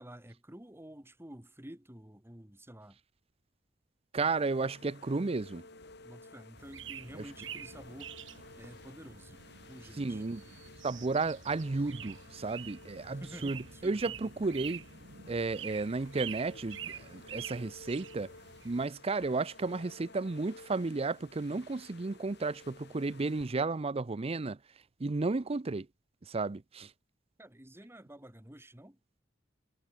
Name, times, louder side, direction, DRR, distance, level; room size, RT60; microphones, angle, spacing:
voice 1, 0.0-3.0 6.0-8.2 8.6-9.4 9.7-10.3 13.1-14.3 27.4-29.0, right 1 dB, 15° right, 1.9 m, -50 dB
voice 2, 4.1-5.6 7.1-7.2 10.0-10.4 10.8-14.8 15.3-18.3 18.6-24.6 25.0-25.9 26.3-26.9, right 3 dB, 30° right, 0.5 m, -33 dB
sound 1, 4.2-23.5, left 3 dB, 60° left, 5.5 m, -54 dB
sound 2, 6.6-18.9, right 9 dB, 70° right, 3.0 m, -47 dB
head